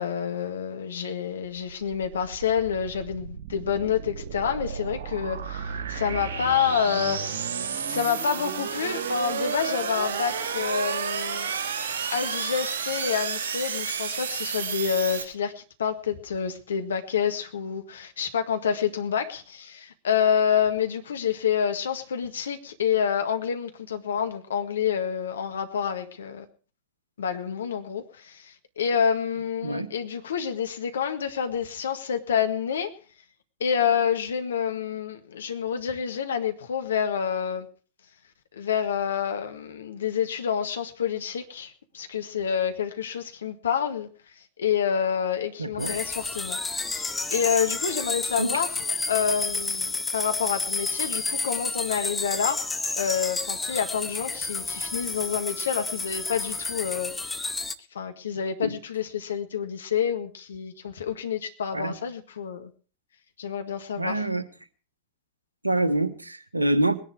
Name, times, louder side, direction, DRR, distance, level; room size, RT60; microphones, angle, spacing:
voice 1, 0.0-7.4 7.9-11.5 12.1-26.4 27.2-32.9 33.6-37.7 38.5-44.1 44.6-46.6 46.9-48.8 49.1-52.6 53.0-57.1 57.9-62.7 63.4-64.2, left 7 dB, 65° left, 1.7 m, -28 dB
sound 1, 1.4-15.2, right 6 dB, 60° right, 3.2 m, -31 dB
voice 2, 45.6-45.9 48.4-48.5 58.6-58.8 61.7-62.0 64.0-64.5 65.6-67.0, right 1 dB, 85° right, 1.2 m, -26 dB
sound 2, 45.8-57.8, left 3 dB, 10° left, 0.9 m, -30 dB
20.5 x 10.5 x 4.7 m
figure-of-eight pair, 90°, 0 cm